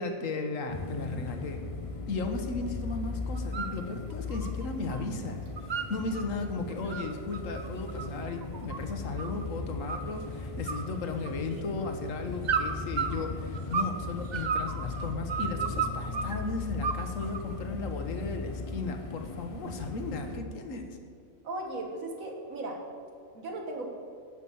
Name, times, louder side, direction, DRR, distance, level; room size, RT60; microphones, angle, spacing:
voice 1, 0.0-1.6 2.1-5.4 5.7-21.0, left 3 dB, 70° left, 5 dB, 1.4 m, -35 dB
sound 1, 0.7-20.4, left 4 dB, 40° left, 0.5 m, -38 dB
sound 2, 3.3-3.8 4.1-5.1 5.3-6.3 6.7-9.5 9.9-10.3 10.7-11.6 12.4-14.0 14.3-16.4 16.8-17.6, right 6 dB, 50° right, 0.5 m, -33 dB
voice 2, 21.4-22.8 23.3-23.9, right 2 dB, 75° right, 1 dB, 1.9 m, -36 dB
11.0 x 5.8 x 7.0 m, 2.4 s
omnidirectional pair, 1.5 m